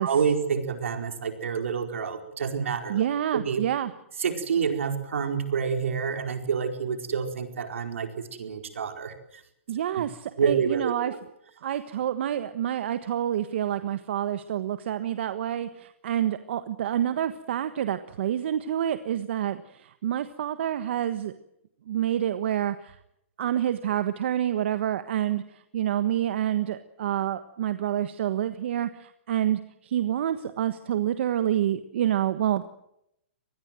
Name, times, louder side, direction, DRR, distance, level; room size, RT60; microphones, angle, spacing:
voice 1, 0.0-3.1 3.4-3.6 4.2-8.1 8.4-9.1 10.4-11.2, right 6 dB, 80° right, 6 dB, 4.7 m, -28 dB
voice 2, 2.9-3.9 9.7-11.1 11.6-21.3 21.9-23.0 23.4-32.7, right 11 dB, 60° right, 11 dB, 1.4 m, -28 dB
25.0 x 20.0 x 7.7 m, 0.77 s
hypercardioid pair, 145°, 7 cm